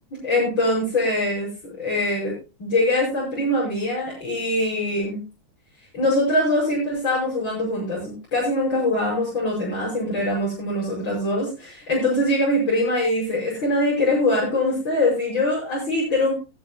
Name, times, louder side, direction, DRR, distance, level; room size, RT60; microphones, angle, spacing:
voice 1, 0.2-1.5 1.8-2.3 2.6-5.2 5.9-16.3, left 1 dB, 85° left, -7 dB, 6.2 m, -23 dB
19.0 x 10.0 x 2.4 m, 0.28 s
omnidirectional pair, 2.1 m